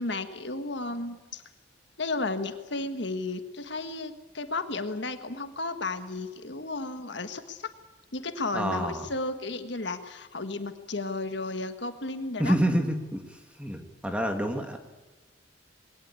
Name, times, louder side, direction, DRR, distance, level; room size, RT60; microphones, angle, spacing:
voice 1, 0.0-1.4 2.0-7.7 8.1-12.6, left 2 dB, 65° left, 8 dB, 1.6 m, -33 dB
voice 2, 8.5-9.0 12.4-13.2 13.6-14.8, equal, 5° right, 4 dB, 2.1 m, -27 dB
22.0 x 18.0 x 8.5 m, 1.2 s
head